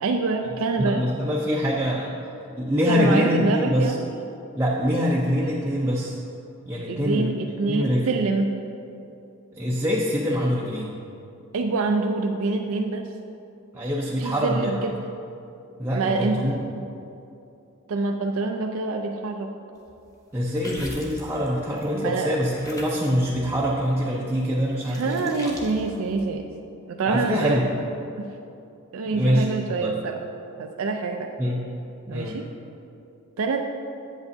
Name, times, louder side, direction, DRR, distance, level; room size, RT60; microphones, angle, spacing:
voice 1, 0.0-1.1 2.9-4.0 6.9-8.5 11.5-13.1 14.2-15.0 15.9-16.6 17.9-19.5 21.9-22.3 24.9-26.5 26.9-27.6 28.2-28.3 28.9-30.2 30.6-31.3 32.1-32.5 33.4-33.6, right 3 dB, 70° right, 3 dB, 0.4 m, -26 dB
voice 2, 0.8-3.9 4.6-6.2 6.7-7.4 7.7-8.1 9.6-10.9 13.7-14.9 15.8-16.6 20.3-25.3 27.1-27.7 29.1-30.0 31.4-31.6 32.1-32.4, equal, 10° right, -5 dB, 0.5 m, -24 dB
sound 1, 19.9-22.0 22.5-26.2, equal, 15° left, 0.8 m, -42 dB
8.2 x 7.9 x 2.6 m, 2.7 s
head